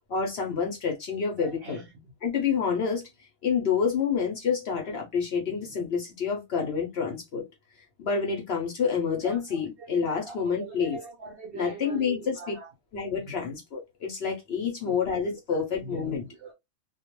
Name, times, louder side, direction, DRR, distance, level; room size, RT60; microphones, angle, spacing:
voice 1, 0.1-1.8 2.2-3.0 3.4-7.5 8.0-11.0 11.5-12.4 12.9-16.2, left 6 dB, 60° left, 0.7 m, -28 dB
voice 2, 1.4-1.9 4.8-5.0 5.5-5.8 6.3-6.7 9.2-12.7 13.1-13.4 14.6-15.0 15.3-16.5, right 3 dB, 65° right, 0.6 m, -43 dB
2.3 x 2.1 x 2.9 m
omnidirectional pair, 1.5 m